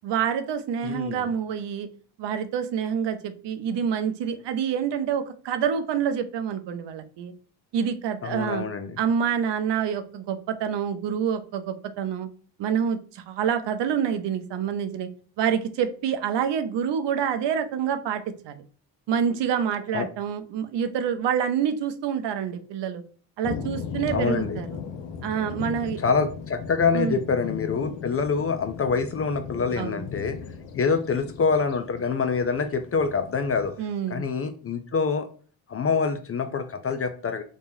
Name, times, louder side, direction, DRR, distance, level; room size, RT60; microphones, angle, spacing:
voice 1, 0.0-1.9 2.2-7.3 7.7-8.7 9.0-12.3 12.6-15.1 15.4-18.6 19.1-23.0 23.4-24.8 25.2-26.0 26.9-27.2 29.8-30.0 33.8-34.3, right 8 dB, 60° right, 9 dB, 0.6 m, -27 dB
voice 2, 0.8-1.3 8.2-9.0 19.9-20.1 24.1-24.6 26.0-30.4 30.7-33.8 34.1-35.3 35.7-37.4, left 5 dB, 30° left, 8 dB, 0.4 m, -26 dB
sound 1, 23.4-33.7, left 6 dB, 65° left, 0.7 m, -37 dB
3.1 x 2.2 x 2.6 m, 0.41 s
hypercardioid pair, 50°, 48 cm